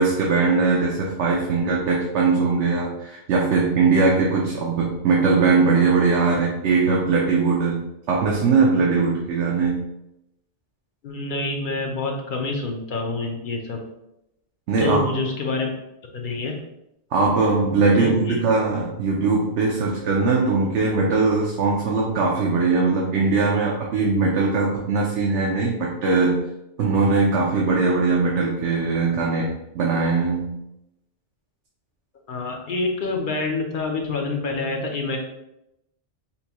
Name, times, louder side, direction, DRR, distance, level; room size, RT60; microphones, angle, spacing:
voice 1, 0.0-7.8 8.1-9.8 14.7-15.0 17.1-26.4 26.8-30.5, right 4 dB, 75° right, -2 dB, 0.9 m, -20 dB
voice 2, 11.0-13.8 14.8-15.7 16.1-16.6 18.0-18.4 32.3-35.2, left 3 dB, 55° left, 2 dB, 0.7 m, -27 dB
5.4 x 2.2 x 2.9 m, 0.85 s
omnidirectional pair, 1.2 m